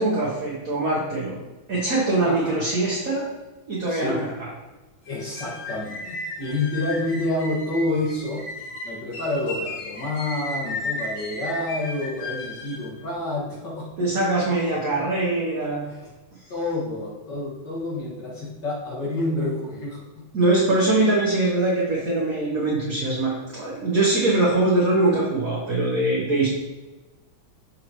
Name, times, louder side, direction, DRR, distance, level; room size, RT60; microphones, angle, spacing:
voice 1, 0.0-1.4 1.7-3.2 3.7-4.5 14.0-15.9 20.3-26.5, right 2 dB, 50° right, -6 dB, 1.4 m, -22 dB
voice 2, 2.2-2.5 3.9-4.1 5.1-8.4 8.8-13.9 15.9-16.1 16.5-20.0, left 2 dB, 60° left, -5 dB, 2.5 m, -28 dB
sound 1, 5.1-12.9, left 2 dB, 80° left, 2.2 m, -34 dB
6.5 x 5.7 x 3.0 m, 1.1 s
omnidirectional pair, 2.2 m